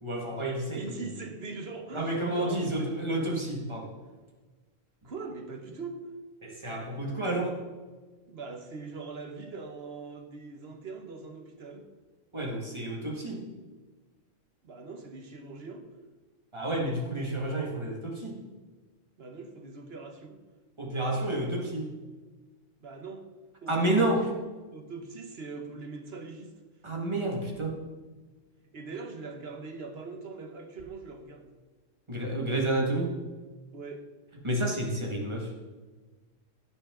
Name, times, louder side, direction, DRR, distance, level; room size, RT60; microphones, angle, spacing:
voice 1, 0.0-1.0 1.9-4.0 6.4-7.6 12.3-13.5 16.5-18.4 20.8-21.9 23.7-24.2 26.8-27.8 32.1-33.1 34.4-35.5, right 1 dB, 20° right, 0 dB, 1.9 m, -30 dB
voice 2, 0.8-2.9 5.0-6.1 8.3-11.9 14.6-15.9 19.2-20.4 22.8-23.2 23.6-24.3 24.7-26.5 28.7-31.5 33.7-34.1, right 4 dB, 50° right, 5 dB, 1.2 m, -41 dB
16.0 x 5.9 x 3.7 m, 1.3 s
omnidirectional pair, 1.4 m